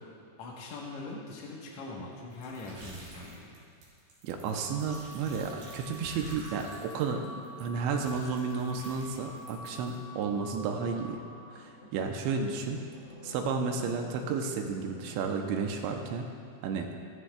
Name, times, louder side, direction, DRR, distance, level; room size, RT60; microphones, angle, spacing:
voice 1, 0.4-3.5, left 2 dB, 85° left, -3 dB, 1.5 m, -42 dB
sound 1, 2.3-9.9, right 2 dB, 60° right, 5.0 m, -50 dB
voice 2, 4.2-7.3 7.6-11.2 11.5-12.8 13.2-16.3 16.6-16.9, right 5 dB, 85° right, 3 dB, 2.9 m, -32 dB
sound 2, 4.4-11.5, right 1 dB, 55° left, 2.7 m, -48 dB
sound 3, 6.6-16.1, left 1 dB, 35° left, 1.9 m, -52 dB
16.5 x 14.5 x 2.3 m, 2.4 s
omnidirectional pair, 5.3 m